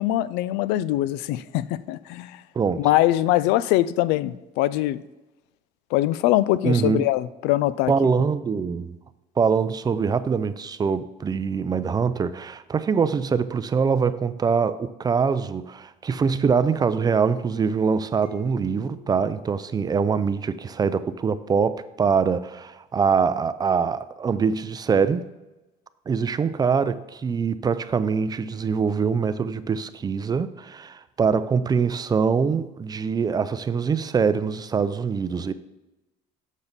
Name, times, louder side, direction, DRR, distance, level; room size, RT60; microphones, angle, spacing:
voice 1, 0.0-2.4 2.8-5.0 5.9-7.9, left 15 dB, 90° left, 0.4 m, -22 dB
voice 2, 2.6-2.9 6.6-7.1 7.9-9.0 9.4-25.2 26.1-35.5, right 5 dB, 25° right, 0.4 m, -23 dB
sound 1, 18.2-20.8, left 6 dB, 55° left, 2.0 m, -49 dB
7.3 x 6.9 x 4.0 m
cardioid pair, 125°, 17 cm